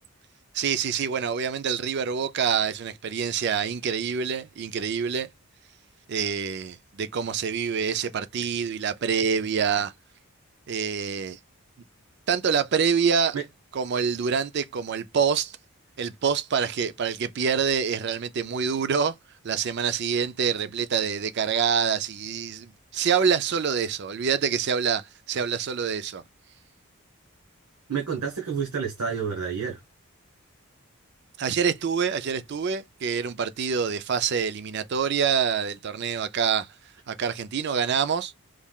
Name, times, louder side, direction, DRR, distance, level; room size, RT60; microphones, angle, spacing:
voice 1, 0.5-5.3 6.1-9.9 10.7-11.4 12.3-13.4 13.7-15.6 16.0-19.1 19.4-26.2 31.4-36.7 37.1-38.3, right 6 dB, 50° right, 0.4 m, -26 dB
voice 2, 27.9-29.8, right 6 dB, 90° right, 1.0 m, -29 dB
3.6 x 3.2 x 2.3 m
head